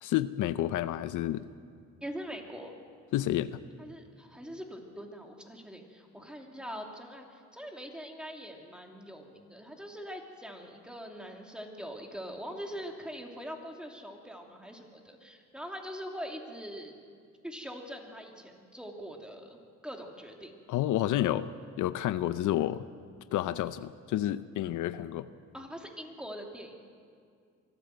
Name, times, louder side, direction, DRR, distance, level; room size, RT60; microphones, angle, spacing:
voice 1, 0.0-1.5 3.1-3.6 20.7-21.5 21.8-22.8 23.3-25.3, left 13 dB, 80° left, 14 dB, 0.6 m, -30 dB
voice 2, 2.0-2.7 3.8-16.9 17.4-20.5 25.5-26.7, equal, 5° right, 1 dB, 2.9 m, -43 dB
24.0 x 14.0 x 7.8 m, 2.2 s
cardioid pair, 90°, 30 cm